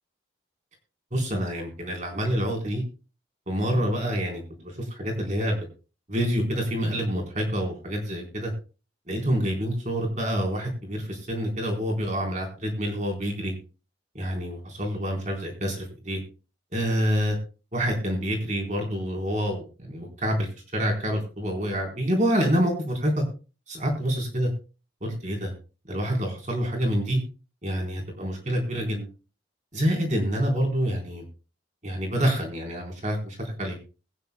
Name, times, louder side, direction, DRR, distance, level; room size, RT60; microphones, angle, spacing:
voice 1, 1.1-2.8 3.5-5.7 6.1-8.5 9.1-13.5 14.1-16.2 16.7-17.4 17.7-23.2 23.7-24.5 25.0-25.5 25.9-27.2 27.6-29.1 29.7-31.2 31.8-33.8, equal, 40° right, 1 dB, 3.9 m, -27 dB
21.5 x 9.6 x 2.2 m, 0.33 s
head